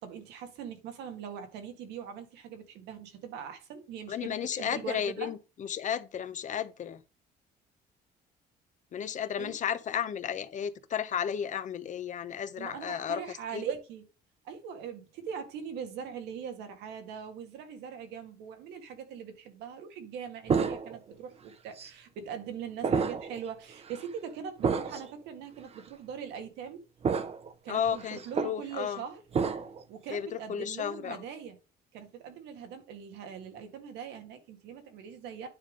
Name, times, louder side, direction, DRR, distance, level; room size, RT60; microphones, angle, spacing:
voice 1, 0.0-5.3 9.4-9.5 12.6-14.1 14.4-26.8 27.6-29.2 29.9-31.6 31.9-35.5, right 7 dB, 85° right, 1.9 m, -41 dB
voice 2, 4.1-7.0 8.9-13.6 27.7-29.0 30.1-31.2, left 8 dB, 45° left, 0.9 m, -33 dB
sound 1, 20.5-21.1 21.8-21.9 22.8-23.4 23.8-24.0 24.6-25.1 25.8-25.9 27.0-27.5 27.9-28.6 29.3-29.8, right 5 dB, 35° right, 0.9 m, -30 dB
9.7 x 3.5 x 5.2 m
cardioid pair, 110°, 17 cm